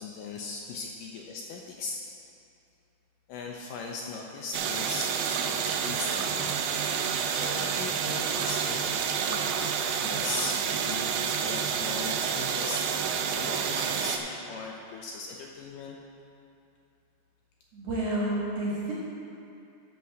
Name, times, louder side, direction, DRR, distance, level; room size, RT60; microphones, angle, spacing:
voice 1, 0.0-2.0 3.3-6.6 6.9-9.7 10.0-16.0, left 4 dB, 75° left, 0 dB, 2.0 m, -39 dB
sound 1, 4.5-14.2, right 7 dB, 85° right, 1.8 m, -29 dB
voice 2, 17.7-18.9, right 1 dB, 55° right, -6 dB, 2.1 m, -30 dB
12.5 x 4.6 x 6.4 m, 2.6 s
omnidirectional pair, 4.3 m